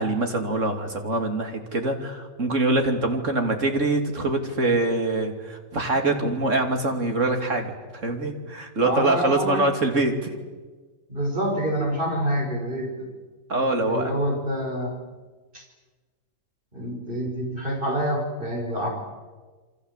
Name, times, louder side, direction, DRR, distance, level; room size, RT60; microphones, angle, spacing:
voice 1, 0.0-10.4 13.5-14.2, right 2 dB, 60° right, 4 dB, 3.3 m, -24 dB
voice 2, 8.8-9.6 11.1-13.1 13.8-15.0 15.5-15.6 16.7-18.9, equal, 35° right, 1 dB, 5.8 m, -27 dB
28.5 x 24.0 x 8.3 m, 1.3 s
omnidirectional pair, 1.5 m